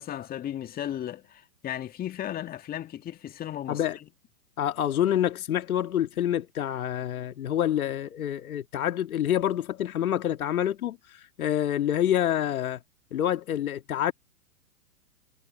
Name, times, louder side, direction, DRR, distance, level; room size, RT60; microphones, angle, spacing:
voice 1, 0.0-3.8, left 11 dB, 20° left, 1.8 m, -35 dB
voice 2, 4.6-12.8 13.1-14.1, left 11 dB, 70° left, 2.0 m, -27 dB
hypercardioid pair, 125°, 44 cm